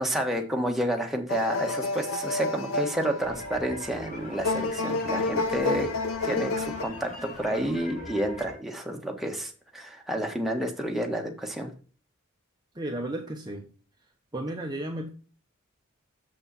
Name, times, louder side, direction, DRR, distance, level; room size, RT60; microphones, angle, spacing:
voice 1, 0.0-5.9 6.2-11.7, equal, ahead, 1 dB, 1.5 m, -30 dB
sound 1, 1.3-6.8, left 3 dB, 85° left, 0.9 m, -30 dB
sound 2, 3.2-8.5, left 1 dB, 40° left, 2.9 m, -42 dB
voice 2, 12.7-13.7 14.3-15.1, right 1 dB, 20° right, 2 dB, 1.0 m, -33 dB
7.3 x 6.7 x 4.2 m, 0.37 s
head